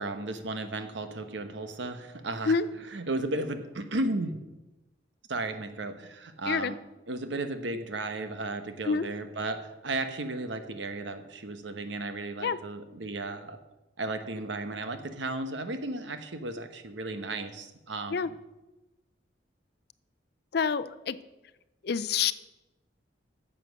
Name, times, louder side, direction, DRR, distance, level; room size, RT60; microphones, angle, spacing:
voice 1, 0.0-2.6 2.9-4.3 5.3-6.8 7.1-13.6 14.0-18.4, right 2 dB, 75° right, 8 dB, 1.1 m, -34 dB
voice 2, 20.5-21.2 21.8-22.3, left 6 dB, 55° left, 15 dB, 0.5 m, -27 dB
9.7 x 7.6 x 6.4 m, 1.0 s
head